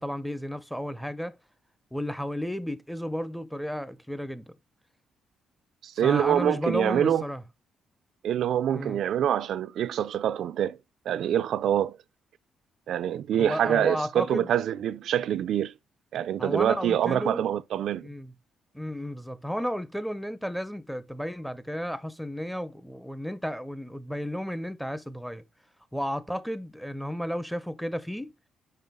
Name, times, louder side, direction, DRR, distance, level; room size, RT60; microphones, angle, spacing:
voice 1, 0.0-1.4 1.9-4.5 6.0-7.4 8.7-9.0 13.4-14.5 16.4-17.4 18.0-18.3 18.7-25.4 25.9-28.3, equal, ahead, 0.6 m, -33 dB
voice 2, 5.8-7.2 8.2-10.8 11.1-12.0 12.9-15.7 16.1-18.1, right 10 dB, 70° right, 0.4 m, -25 dB
5.5 x 5.3 x 3.6 m
cardioid pair, 90°, 0 cm